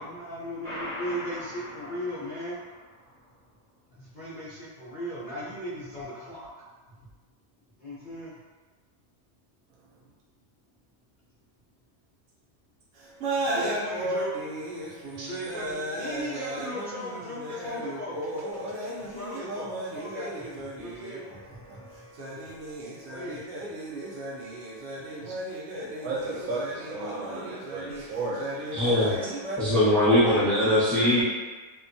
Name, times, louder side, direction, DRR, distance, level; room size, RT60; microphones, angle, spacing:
voice 1, 0.0-2.6 3.9-6.5 6.9-7.0 7.8-8.4 13.5-14.3 15.2-18.2 19.0-22.4 22.9-23.4 30.9-31.2, equal, 65° left, -10 dB, 0.5 m, -37 dB
sound 1, 0.6-3.1, left 1 dB, 30° right, 0.7 m, -40 dB
sound 2, 13.0-29.6, right 1 dB, 85° right, 0.6 m, -35 dB
voice 2, 26.0-28.8, right 2 dB, 70° right, -4 dB, 0.9 m, -34 dB
voice 3, 28.7-29.3 29.6-31.2, left 1 dB, ahead, -10 dB, 0.4 m, -21 dB
2.7 x 2.2 x 2.5 m, 1.4 s
omnidirectional pair, 1.8 m